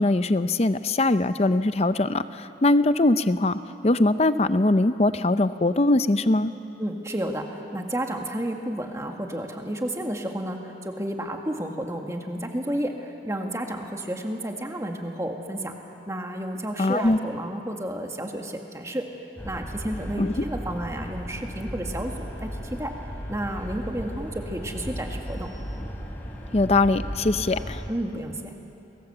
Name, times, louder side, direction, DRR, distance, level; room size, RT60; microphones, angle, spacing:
voice 1, 0.0-6.5 16.8-17.2 20.2-20.4 26.5-27.8, left 2 dB, 35° left, 12 dB, 0.6 m, -22 dB
voice 2, 6.8-15.7 16.1-19.1 19.4-22.9 23.3-25.5 27.9-28.5, right 1 dB, 15° right, 3 dB, 1.9 m, -31 dB
sound 1, 19.4-27.9, equal, 10° left, 3.6 m, -35 dB
28.5 x 21.5 x 8.0 m, 2.8 s
head